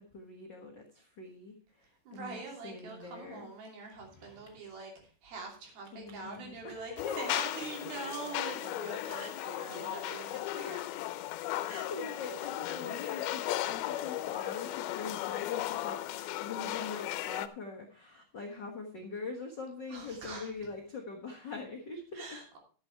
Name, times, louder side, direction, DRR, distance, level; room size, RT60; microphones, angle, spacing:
voice 1, 0.1-3.5 5.9-7.2 9.1-9.6 11.5-22.4, left 4 dB, 60° left, 0 dB, 1.1 m, -43 dB
voice 2, 2.1-10.9 19.9-20.5 22.1-22.6, right 3 dB, 75° right, 1 dB, 4.8 m, -44 dB
sound 1, 3.9-4.9 5.9-7.4, equal, 15° right, 1.8 m, -60 dB
sound 2, 7.0-17.5, left 14 dB, 90° left, 2.6 m, -36 dB
12.0 x 8.1 x 4.5 m, 0.40 s
omnidirectional pair, 4.3 m